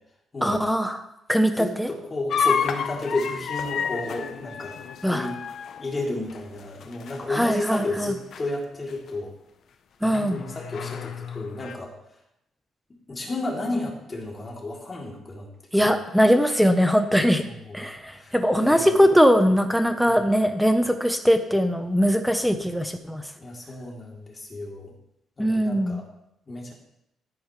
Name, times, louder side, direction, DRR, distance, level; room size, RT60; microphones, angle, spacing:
voice 1, 0.4-1.0 1.3-1.9 5.0-5.3 7.3-8.1 10.0-10.4 15.7-17.4 17.7-23.3 25.4-26.0, equal, ahead, 7 dB, 1.1 m, -21 dB
voice 2, 1.6-4.7 5.0-5.4 5.8-9.4 10.0-11.9 13.1-15.5 15.8-15.9 17.4-18.4 18.6-18.9 20.1-20.2 23.4-24.9 25.4-26.0 26.5-26.7, left 2 dB, 30° left, -2 dB, 3.5 m, -32 dB
sound 1, 2.3-7.4 7.7-8.0 8.3-8.5 9.1-9.2 10.1-11.7, left 7 dB, 65° left, 0.9 m, -30 dB
14.0 x 10.5 x 3.4 m, 0.82 s
cardioid pair, 90°, 0 cm